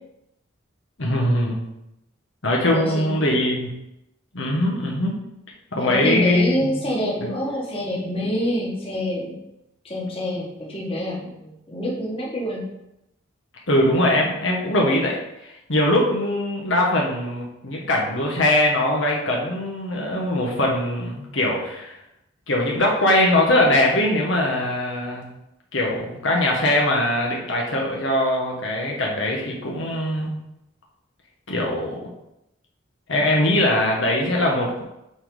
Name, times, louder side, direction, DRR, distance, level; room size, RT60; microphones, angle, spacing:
voice 1, 1.0-1.7 2.4-3.7 4.3-5.2 5.7-6.8 13.7-15.2 15.4-21.9 22.5-25.3 25.7-30.4 31.5-32.0 33.1-34.8, left 1 dB, 75° left, -2 dB, 1.4 m, -21 dB
voice 2, 2.7-3.3 5.8-9.4 9.8-12.6, equal, 30° left, -4 dB, 1.7 m, -27 dB
7.7 x 4.1 x 3.9 m, 0.86 s
head